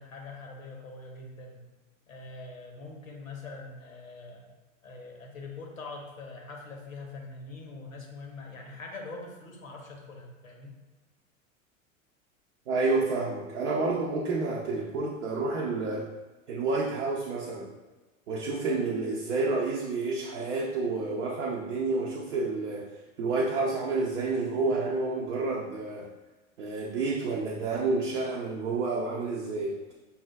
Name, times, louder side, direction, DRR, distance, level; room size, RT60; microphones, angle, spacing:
voice 1, 0.0-1.7 2.1-4.4 4.8-10.8, left 3 dB, 75° left, 1 dB, 0.8 m, -43 dB
voice 2, 12.7-16.1 16.5-17.7 18.3-26.1 26.6-29.7, right 3 dB, 60° right, -2 dB, 0.6 m, -29 dB
5.4 x 2.3 x 2.2 m, 1.2 s
figure-of-eight pair, 85°, 40 cm